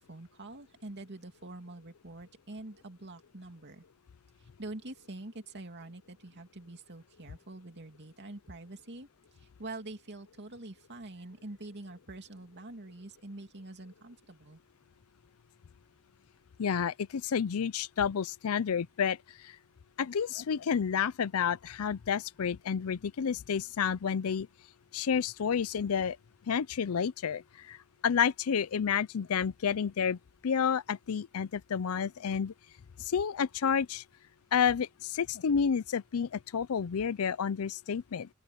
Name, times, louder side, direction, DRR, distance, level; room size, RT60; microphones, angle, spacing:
voice 1, 0.1-3.8 4.6-9.1 9.4-14.6, right 2 dB, 55° right, 2.7 m, -45 dB
voice 2, 16.6-19.2 19.4-19.5 20.0-24.5 24.9-26.2 26.5-27.8 28.0-32.5 33.0-34.0 34.5-38.3, left 7 dB, 80° left, 0.5 m, -30 dB
open air
head